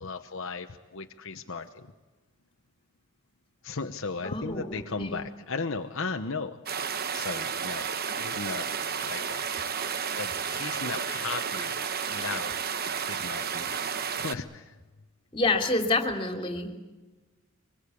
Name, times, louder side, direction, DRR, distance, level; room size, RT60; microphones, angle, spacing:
voice 1, 0.0-1.9 3.6-8.7 9.0-11.8 12.1-12.6 13.0-13.7 14.2-14.7, left 4 dB, 60° left, 5 dB, 1.0 m, -36 dB
voice 2, 4.2-5.3 15.3-16.8, left 2 dB, 25° left, 4 dB, 2.9 m, -28 dB
sound 1, 6.7-14.3, right 7 dB, 45° right, 1.0 m, -32 dB
24.5 x 21.0 x 8.5 m, 1.2 s
head